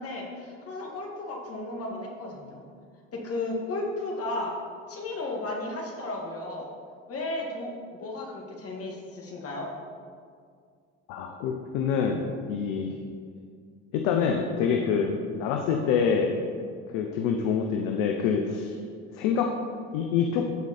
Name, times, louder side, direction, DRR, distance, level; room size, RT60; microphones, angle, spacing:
voice 1, 0.0-2.6 3.1-4.6 4.9-6.7 7.1-9.7, left 2 dB, 45° left, -1 dB, 2.2 m, -34 dB
voice 2, 11.1-12.9 13.9-16.4 16.9-18.8 19.1-19.6 19.9-20.5, left 6 dB, 70° left, 4 dB, 0.8 m, -26 dB
14.0 x 4.8 x 4.3 m, 2.1 s
hypercardioid pair, 80°, 33 cm